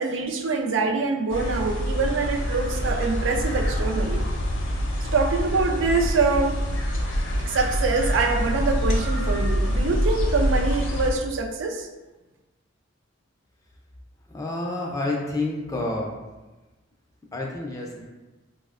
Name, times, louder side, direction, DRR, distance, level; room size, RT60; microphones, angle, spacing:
voice 1, 0.0-4.2 5.1-6.6 7.5-11.9, right 4 dB, 70° right, 3 dB, 0.4 m, -24 dB
sound 1, 1.3-11.1, equal, 70° left, 0.6 m, -25 dB
voice 2, 14.3-16.1 17.3-18.0, left 2 dB, 15° left, -1 dB, 0.3 m, -29 dB
4.6 x 2.0 x 2.4 m, 1.1 s
head